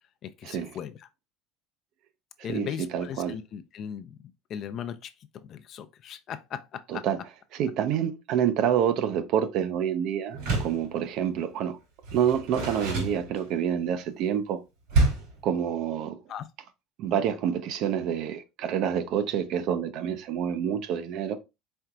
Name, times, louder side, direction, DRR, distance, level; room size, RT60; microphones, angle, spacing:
voice 1, 0.2-1.0 2.4-4.1 4.5-5.1 5.4-7.0 16.3-16.5, left 8 dB, 45° left, 0.4 m, -37 dB
voice 2, 2.5-3.4 6.9-7.2 7.5-11.8 12.1-14.6 15.4-16.2 17.0-21.4, right 9 dB, 60° right, 0.5 m, -27 dB
Door, 10.3-10.9 12.0-13.7 14.9-15.4, right 2 dB, 80° right, 2.8 m, -27 dB
4.4 x 3.8 x 2.3 m
supercardioid pair, 130°, 0 cm